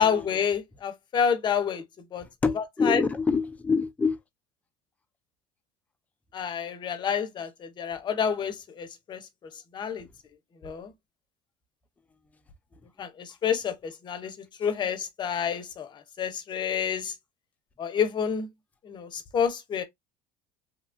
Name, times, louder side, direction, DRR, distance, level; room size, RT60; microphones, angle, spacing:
voice 1, 0.0-1.8 2.1-2.2 2.8-3.0 6.3-9.2 9.7-10.0 10.6-10.9 13.0-15.9 16.2-17.1 17.8-18.5 18.8-19.8, left 7 dB, 35° left, 0.7 m, -28 dB
voice 2, 2.4-4.2, left 4 dB, 10° left, 0.4 m, -26 dB
2.8 x 2.3 x 2.5 m
cardioid pair, 125°, 14 cm